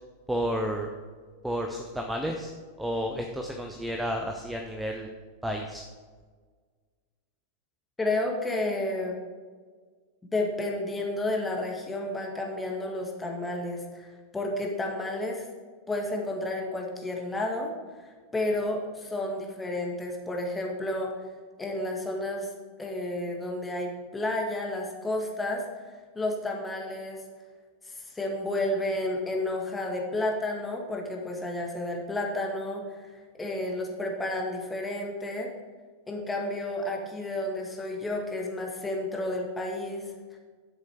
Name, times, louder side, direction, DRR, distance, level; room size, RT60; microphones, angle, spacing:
voice 1, 0.3-0.9 1.4-2.5 2.8-5.1 5.4-5.8, equal, 5° right, 2 dB, 0.8 m, -31 dB
voice 2, 8.0-9.2 10.2-15.5 15.9-17.7 18.0-21.1 21.6-22.5 22.8-25.6 26.1-27.2 27.8-35.5 36.1-40.1, left 1 dB, 10° left, 0 dB, 2.0 m, -31 dB
10.5 x 7.7 x 4.8 m, 1.5 s
figure-of-eight pair, 90°, 0 cm